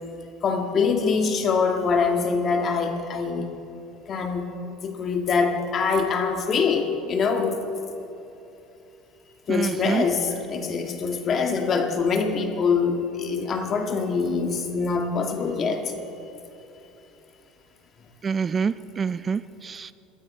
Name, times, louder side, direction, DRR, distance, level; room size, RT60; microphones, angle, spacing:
voice 1, 0.4-3.5 4.1-4.5 4.8-7.6 9.5-15.8, left 5 dB, 40° left, 4 dB, 1.9 m, -24 dB
voice 2, 9.5-10.1 18.2-19.9, right 6 dB, 30° right, 16 dB, 0.3 m, -26 dB
23.0 x 13.0 x 4.4 m, 2.9 s
supercardioid pair, 115°, 0 cm